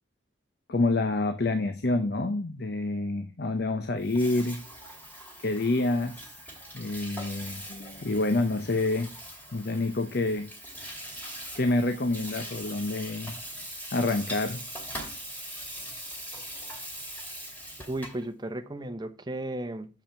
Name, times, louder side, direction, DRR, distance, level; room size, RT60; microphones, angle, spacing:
voice 1, 0.7-4.6 5.4-6.3 6.7-9.1 9.5-10.5 11.6-13.3 13.9-14.6, left 2 dB, 55° left, 9 dB, 0.8 m, -27 dB
Water tap faucet / Sink (filling or washing), 3.9-18.2, equal, 10° left, 2.6 m, -41 dB
voice 2, 17.8-19.9, right 1 dB, 20° right, 7 dB, 0.8 m, -34 dB
7.1 x 5.6 x 5.7 m, 0.33 s
head